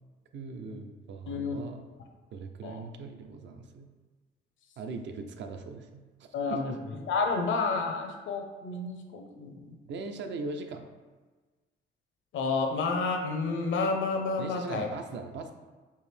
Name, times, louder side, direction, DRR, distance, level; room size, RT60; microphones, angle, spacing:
voice 1, 0.3-1.9 2.3-3.9 4.8-6.0 6.5-6.6 9.9-10.8 14.4-15.5, right 4 dB, 65° right, 6 dB, 0.5 m, -39 dB
voice 2, 1.3-1.6 2.6-2.8 6.3-9.8 12.3-14.9, left 4 dB, 75° left, 4 dB, 0.7 m, -30 dB
4.6 x 2.7 x 3.3 m, 1.3 s
cardioid pair, 90°, 20 cm